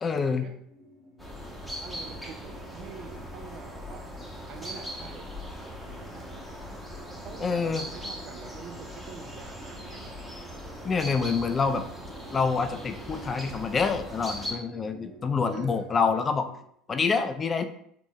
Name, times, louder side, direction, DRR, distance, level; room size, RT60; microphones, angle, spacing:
voice 1, 0.0-0.5 7.4-7.9 10.8-11.8 12.3-16.5 16.9-17.6, left 5 dB, 25° left, 8 dB, 0.4 m, -26 dB
sound 1, 0.6-16.6, equal, 75° right, 1.4 m, -53 dB
sound 2, 1.2-14.5, equal, 5° right, 1.0 m, -40 dB
voice 2, 1.8-4.1 4.5-5.5 7.2-10.1 15.5-15.9, right 6 dB, 45° right, 5 dB, 0.6 m, -45 dB
3.9 x 3.5 x 3.0 m, 0.67 s
figure-of-eight pair, 65°, 0 cm